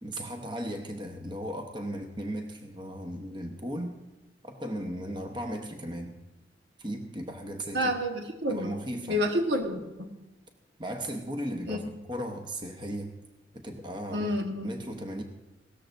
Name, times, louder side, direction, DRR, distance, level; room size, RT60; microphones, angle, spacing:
voice 1, 0.0-4.0 4.4-6.2 6.8-7.9 8.5-9.2 10.8-13.2 13.5-14.3 14.6-15.2, equal, 25° right, 4 dB, 0.9 m, -36 dB
voice 2, 7.7-8.8 9.1-10.1 11.7-11.8 14.1-14.7, equal, 75° right, 4 dB, 1.3 m, -29 dB
17.0 x 13.5 x 2.6 m, 1.0 s
head